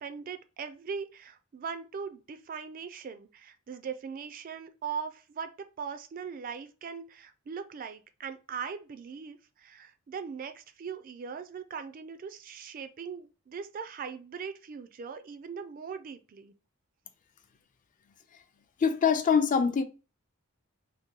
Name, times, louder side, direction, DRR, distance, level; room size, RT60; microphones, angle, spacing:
voice 1, 0.0-5.5 5.8-16.5, right 6 dB, 40° right, 0.3 m, -40 dB
voice 2, 18.8-19.8, left 6 dB, 40° left, 0.4 m, -24 dB
2.8 x 2.6 x 3.7 m
head